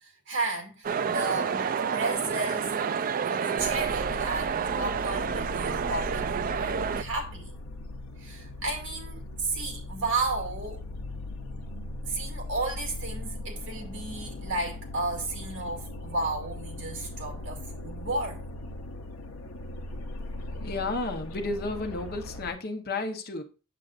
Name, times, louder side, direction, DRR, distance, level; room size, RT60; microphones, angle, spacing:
voice 1, 0.0-2.7 3.2-7.5 8.2-10.8 12.1-18.4, right 3 dB, 60° right, 2.5 m, -33 dB
sound 1, 0.8-7.0, right 6 dB, 40° right, 0.3 m, -29 dB
sound 2, 3.6-22.5, left 2 dB, 90° left, 0.8 m, -39 dB
voice 2, 20.6-23.4, left 3 dB, 45° left, 1.0 m, -32 dB
7.7 x 7.4 x 2.5 m
head